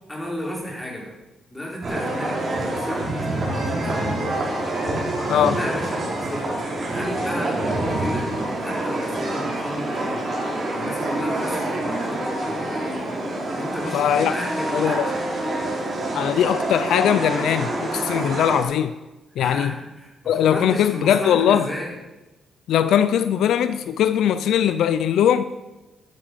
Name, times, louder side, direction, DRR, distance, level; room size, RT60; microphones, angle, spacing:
voice 1, 0.1-1.1 1.5-3.0 3.4-4.3 5.3-6.5 6.9-8.3 8.6-10.2 10.7-13.1 13.5-15.2 19.3-21.9, left 1 dB, 10° left, 4.7 m, -33 dB
sound 1, 1.8-18.6, right 1 dB, 40° right, 5.5 m, -26 dB
voice 2, 5.3-5.6 13.9-14.3 14.7-15.1 16.1-18.9 19.4-19.7 20.3-21.7 22.7-25.4, left 9 dB, 80° left, 0.6 m, -20 dB
12.5 x 11.0 x 6.9 m
cardioid pair, 110°, 0 cm